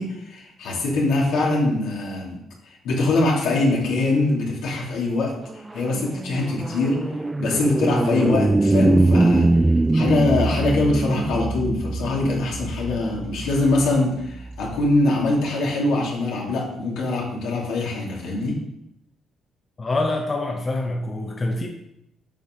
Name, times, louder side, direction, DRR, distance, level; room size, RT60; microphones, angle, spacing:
voice 1, 0.0-2.4 2.8-9.5 9.9-18.6, left 2 dB, 85° left, -3 dB, 2.5 m, -23 dB
sound 1, 5.3-14.9, right 2 dB, 15° right, 0.3 m, -23 dB
voice 2, 19.8-21.7, left 2 dB, 35° left, 2 dB, 0.8 m, -25 dB
8.4 x 5.5 x 3.8 m, 0.80 s
cardioid pair, 90°, 0 cm